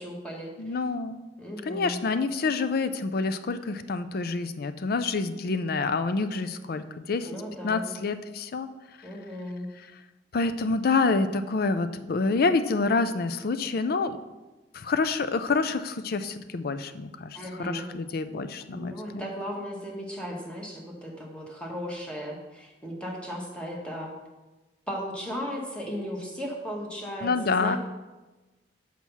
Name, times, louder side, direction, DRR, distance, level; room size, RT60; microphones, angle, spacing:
voice 1, 0.0-0.5 1.4-2.0 7.2-8.0 9.0-9.7 17.3-17.9 18.6-24.1 24.9-27.8, equal, 5° left, -2 dB, 1.5 m, -36 dB
voice 2, 0.6-1.2 1.6-7.3 7.6-8.7 10.3-14.2 14.7-19.3 27.2-27.8, left 4 dB, 55° left, 11 dB, 0.5 m, -27 dB
6.3 x 5.9 x 5.5 m, 1.1 s
head